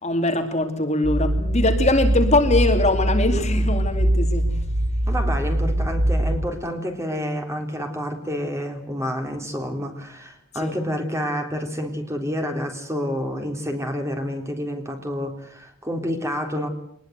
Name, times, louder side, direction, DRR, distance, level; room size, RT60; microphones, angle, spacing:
voice 1, 0.0-4.6 10.5-10.7, left 2 dB, 30° left, 2.6 m, -22 dB
sound 1, 1.0-6.5, right 1 dB, 80° right, 1.7 m, -22 dB
voice 2, 5.1-16.7, equal, 15° right, 3.5 m, -29 dB
24.5 x 21.0 x 8.1 m
head